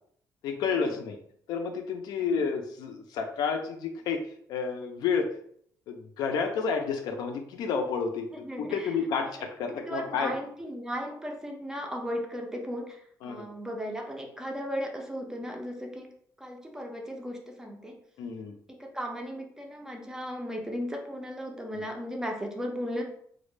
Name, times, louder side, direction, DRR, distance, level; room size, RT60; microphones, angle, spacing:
voice 1, 0.4-1.2 1.5-4.2 4.5-5.3 5.9-10.3 13.2-13.5 18.2-18.5 21.7-21.9, left 5 dB, 75° left, 5 dB, 0.4 m, -30 dB
voice 2, 8.4-9.0 9.9-16.1 16.4-18.0 18.7-23.0, equal, 10° right, 2 dB, 0.4 m, -36 dB
2.1 x 2.0 x 3.1 m, 0.64 s
cardioid pair, 135°, 7 cm